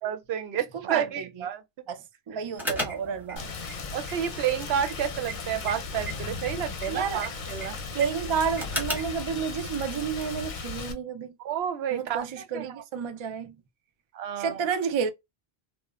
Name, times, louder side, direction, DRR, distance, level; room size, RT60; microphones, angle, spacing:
voice 1, 0.0-1.6 3.0-3.2 3.9-7.8 11.4-12.3 12.5-12.8 14.1-14.6, right 9 dB, 85° right, 0.8 m, -30 dB
voice 2, 0.9-1.3 1.9-3.5 6.9-7.3 7.9-11.3 11.9-13.6 14.4-15.1, right 6 dB, 50° right, 0.3 m, -30 dB
sound 1, 2.5-9.2, right 1 dB, ahead, 0.9 m, -37 dB
Rain, 3.4-10.9, left 4 dB, 55° left, 0.7 m, -37 dB
2.9 x 2.0 x 2.3 m
omnidirectional pair, 1.0 m